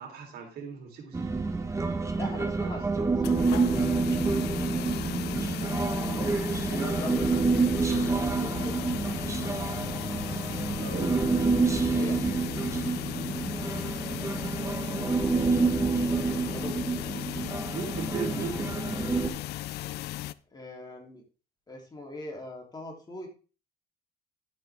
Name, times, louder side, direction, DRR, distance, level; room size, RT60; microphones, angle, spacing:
voice 1, 0.0-1.6 2.0-2.8 6.7-6.9 10.8-11.5 13.1-13.5 17.7-19.0, right 5 dB, 70° right, 2 dB, 3.8 m, -39 dB
Human voice, 1.1-19.3, right 4 dB, 15° right, 1.2 m, -28 dB
voice 2, 2.2-4.9 6.0-7.8 8.4-8.9 10.8-11.4 11.9-12.2 16.5-16.8 20.5-21.2 21.7-23.3, left 2 dB, 25° left, 0 dB, 3.2 m, -42 dB
sound 1, 3.2-20.3, left 15 dB, 75° left, 0.5 m, -36 dB
11.5 x 7.7 x 3.6 m, 0.36 s
cardioid pair, 110°, 17 cm